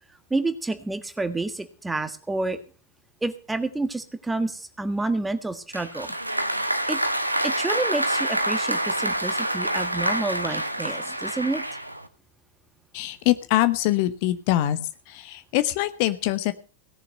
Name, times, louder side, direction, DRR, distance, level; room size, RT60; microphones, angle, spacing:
voice 1, 0.3-2.6 3.2-6.1 6.9-7.0 7.4-11.6, right 2 dB, 10° right, 9 dB, 1.6 m, -29 dB
Applause, 5.7-12.1, right 1 dB, 85° right, 1.1 m, -27 dB
voice 2, 12.9-14.8 15.1-16.5, left 15 dB, 45° left, 12 dB, 1.0 m, -23 dB
17.5 x 7.0 x 6.6 m, 0.37 s
figure-of-eight pair, 90°, 0 cm